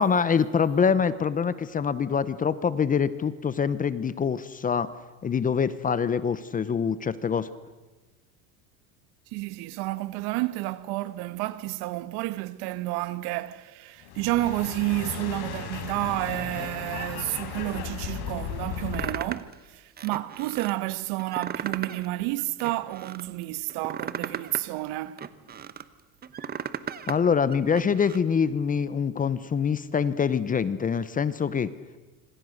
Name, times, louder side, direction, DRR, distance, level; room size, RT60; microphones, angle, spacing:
voice 1, 0.0-4.9 5.2-7.5 27.1-31.7, left 6 dB, 20° left, 0.8 m, -25 dB
voice 2, 9.3-25.2, right 18 dB, 60° right, 1.4 m, -30 dB
sound 1, 14.0-19.2, left 8 dB, 65° left, 4.6 m, -36 dB
sound 2, 18.9-19.5 20.0-20.7 21.2-22.1 22.4-23.2 23.7-25.8 26.2-27.2 27.5-28.2, right 8 dB, 20° right, 1.0 m, -35 dB
26.5 x 26.0 x 6.5 m
supercardioid pair, 135°, 43 cm